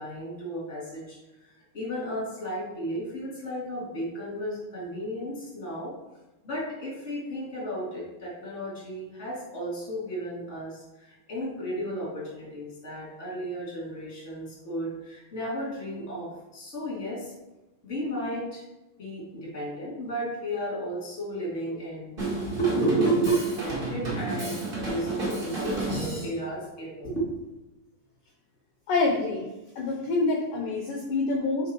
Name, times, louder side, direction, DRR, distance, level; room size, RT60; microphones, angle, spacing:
voice 1, 0.0-5.9 6.4-17.3 17.8-18.6 19.0-27.5, right 1 dB, 20° left, -6 dB, 2.3 m, -33 dB
Drum kit, 22.2-26.3, right 1 dB, 30° right, 0.9 m, -32 dB
voice 2, 28.9-29.5 29.8-31.7, left 3 dB, 75° left, 1 dB, 2.1 m, -26 dB
6.2 x 5.1 x 4.5 m, 1.0 s
omnidirectional pair, 4.6 m